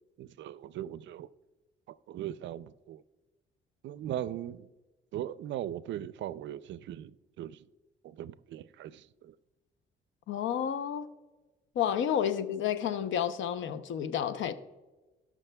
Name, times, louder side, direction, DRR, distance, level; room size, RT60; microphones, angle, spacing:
voice 1, 0.2-1.3 2.1-3.0 3.8-4.7 5.1-7.6 8.0-9.3, right 11 dB, 70° right, 0.4 m, -39 dB
voice 2, 10.3-11.1 11.8-14.5, left 9 dB, 75° left, 0.7 m, -30 dB
17.5 x 6.2 x 2.2 m
cardioid pair, 90°, 20 cm